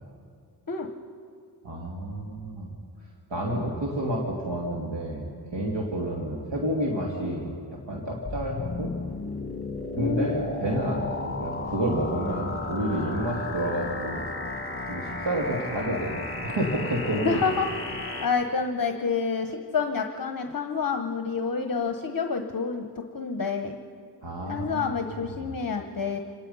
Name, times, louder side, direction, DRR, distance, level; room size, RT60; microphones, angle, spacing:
voice 1, 1.6-2.7 3.3-8.9 9.9-14.3 14.9-17.4 24.2-25.3, right 1 dB, 70° right, -2 dB, 2.7 m, -30 dB
sound 1, 8.3-18.3, left 3 dB, 30° left, 2.7 m, -34 dB
voice 2, 10.0-10.3 17.2-17.7 18.2-23.8 24.5-26.2, left 5 dB, 50° left, 5 dB, 1.1 m, -28 dB
28.0 x 18.5 x 5.6 m, 2.3 s
cardioid pair, 70°, 44 cm